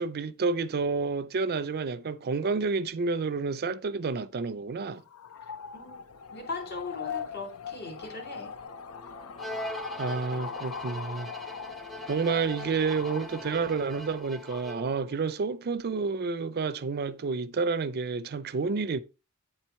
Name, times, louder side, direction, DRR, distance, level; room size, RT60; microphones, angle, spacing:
voice 1, 0.0-5.0 10.0-11.3 12.1-19.0, right 4 dB, 45° right, 0.5 m, -29 dB
sound 1, 5.0-14.7, left 6 dB, 90° left, 0.6 m, -41 dB
voice 2, 6.3-8.6, left 3 dB, 50° left, 2.1 m, -39 dB
sound 2, 8.6-14.2, left 1 dB, 25° left, 1.1 m, -51 dB
Bowed string instrument, 9.4-15.1, equal, ahead, 0.6 m, -42 dB
8.9 x 4.6 x 4.3 m
head